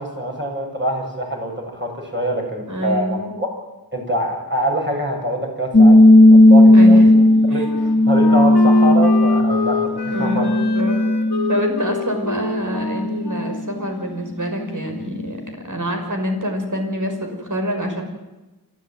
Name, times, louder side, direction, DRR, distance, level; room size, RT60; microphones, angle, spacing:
voice 1, 0.0-3.5 3.9-6.0 6.2-7.0 7.5-10.5, right 1 dB, 30° right, 0 dB, 7.9 m, -25 dB
voice 2, 2.7-3.4 6.7-7.1 7.5-8.3 10.1-11.0 11.5-18.0, equal, 50° right, 4 dB, 5.6 m, -26 dB
sound 1, 5.7-11.8 12.2-13.6, left 1 dB, 30° left, 2.3 m, -13 dB
Wind instrument woodwind instrument, 7.1-14.6, left 4 dB, 90° left, 2.5 m, -29 dB
28.0 x 13.5 x 9.2 m, 1.1 s
wide cardioid pair, 65°, 38 cm